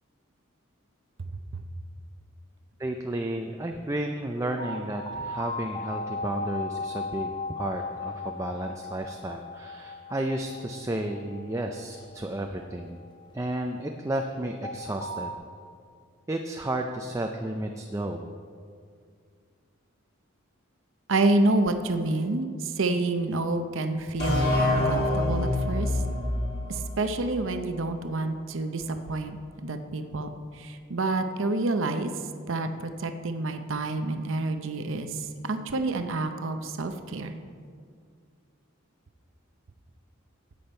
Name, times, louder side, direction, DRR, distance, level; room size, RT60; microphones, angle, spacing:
voice 1, 2.8-7.3 7.6-13.0 13.3-15.3 16.3-18.2, right 1 dB, 15° right, 3 dB, 0.4 m, -32 dB
sound 1, 4.6-13.7 14.6-15.3, left 3 dB, 20° left, 0.8 m, -37 dB
voice 2, 21.1-26.0 26.7-29.4 29.6-32.1 32.5-37.3, right 2 dB, 60° right, 8 dB, 0.7 m, -28 dB
sound 2, 24.2-27.8, left 1 dB, 50° left, 3.1 m, -27 dB
13.5 x 8.6 x 4.4 m, 2.2 s
head